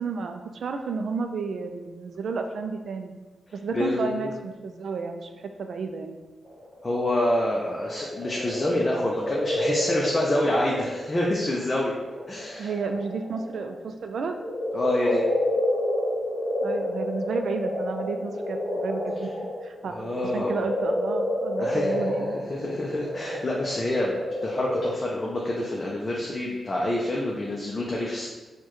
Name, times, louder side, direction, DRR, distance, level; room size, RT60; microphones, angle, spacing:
voice 1, 0.0-3.1 3.5-6.2 12.6-14.4 16.6-19.3 19.6-20.0 20.3-22.4, right 4 dB, 75° right, 5 dB, 0.3 m, -32 dB
voice 2, 3.7-4.3 6.8-11.9 12.3-12.7 14.7-15.2 19.9-20.6 21.6-22.0 22.3-28.3, left 1 dB, 25° left, -3 dB, 0.4 m, -27 dB
sound 1, 6.4-11.5 12.0-13.7 14.1-24.8, left 1 dB, ahead, 1.1 m, -29 dB
4.4 x 2.2 x 3.0 m, 1.2 s
wide cardioid pair, 135°, 0 cm